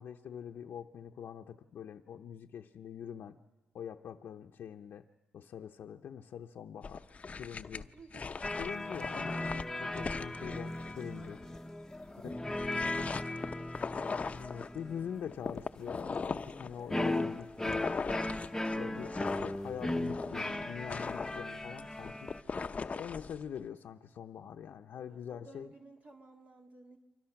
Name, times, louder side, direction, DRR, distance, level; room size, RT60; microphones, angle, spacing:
voice 1, 0.0-3.4 3.7-5.0 5.3-7.1 7.3-7.9 8.6-11.4 13.0-13.1 14.3-18.0 18.7-22.3 22.9-25.7, left 8 dB, 75° left, 2 dB, 0.8 m, -44 dB
sound 1, 6.8-11.7 12.1-14.8 15.3-23.5, left 4 dB, 40° left, 0.7 m, -40 dB
voice 2, 7.7-8.4 12.1-14.3 24.9-27.0, right 3 dB, 40° right, 1 dB, 2.1 m, -56 dB
sound 2, 8.4-22.4, left 1 dB, 10° left, 1.0 m, -37 dB
29.5 x 25.0 x 5.9 m, 1.2 s
cardioid pair, 85°, 4 cm